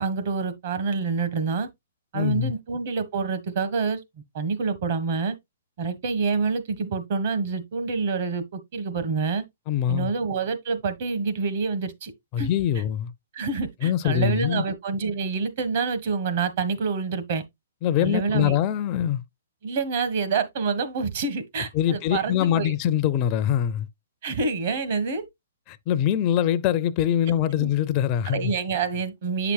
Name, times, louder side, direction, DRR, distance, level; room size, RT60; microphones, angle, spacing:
voice 1, 0.0-1.7 2.1-4.0 4.3-5.3 5.8-9.4 9.9-12.1 12.4-12.5 13.3-17.4 18.0-18.5 19.6-22.7 24.2-25.2 27.6-27.7 28.3-29.5, right 4 dB, 55° right, 1.4 m, -27 dB
voice 2, 2.1-2.5 9.7-10.1 12.3-13.1 13.8-14.6 17.8-19.2 21.7-23.9 25.7-28.5, left 10 dB, 35° left, 0.5 m, -23 dB
8.1 x 5.9 x 2.4 m
hypercardioid pair, 130°, 0 cm